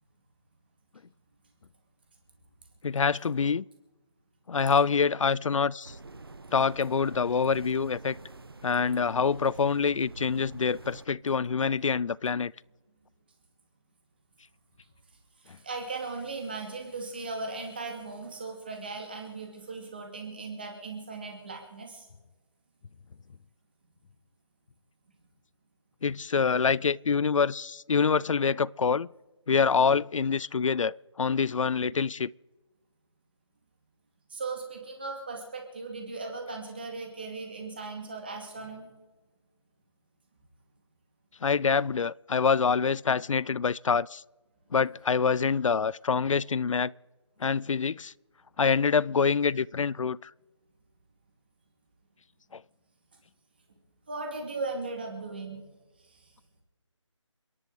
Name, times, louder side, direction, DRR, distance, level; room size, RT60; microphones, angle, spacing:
voice 1, 2.8-3.6 4.5-6.0 6.5-8.2 8.6-12.5 26.0-29.1 29.5-32.3 41.4-44.2 44.7-46.9 47.4-48.1 48.6-50.3 52.5-52.6, left 5 dB, 85° left, 0.4 m, -26 dB
sound 1, 5.8-11.1, right 3 dB, 50° right, 1.1 m, -46 dB
voice 2, 15.4-22.1 34.3-38.9 44.8-44.9 54.1-55.6 56.0-56.3, right 3 dB, 20° right, 2.2 m, -38 dB
29.5 x 11.0 x 3.9 m
figure-of-eight pair, 180°, 16 cm